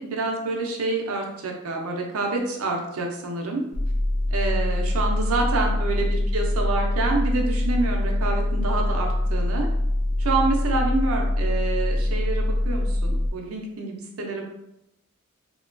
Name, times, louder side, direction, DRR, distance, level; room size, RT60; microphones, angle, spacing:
voice 1, 0.0-3.6 4.3-9.7 10.2-14.4, right 3 dB, 75° right, 1 dB, 0.5 m, -27 dB
sound 1, 3.7-13.3, left 1 dB, 60° left, 0.4 m, -24 dB
2.8 x 2.2 x 2.5 m, 0.83 s
head